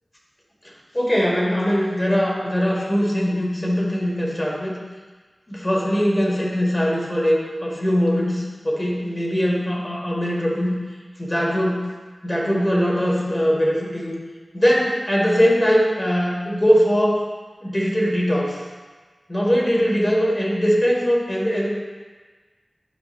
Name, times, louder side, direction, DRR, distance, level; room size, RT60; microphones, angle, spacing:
voice 1, 0.9-4.8 5.5-10.8 11.2-11.9 12.2-14.1 14.5-17.2 17.6-18.6 19.3-21.7, equal, 20° left, -3 dB, 1.8 m, -21 dB
10.5 x 5.0 x 2.6 m, 1.4 s
wide cardioid pair, 60°, 0 cm